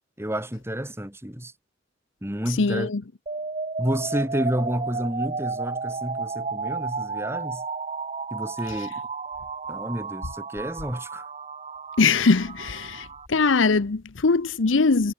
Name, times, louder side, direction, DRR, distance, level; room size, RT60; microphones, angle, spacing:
voice 1, 0.2-1.5 2.2-2.9 3.8-7.6 8.3-8.9 9.7-11.3, equal, 15° right, 3.7 m, -30 dB
voice 2, 2.6-3.0 12.0-15.1, left 4 dB, 75° left, 0.8 m, -21 dB
sound 1, 3.3-13.3, right 4 dB, 35° right, 1.6 m, -33 dB
head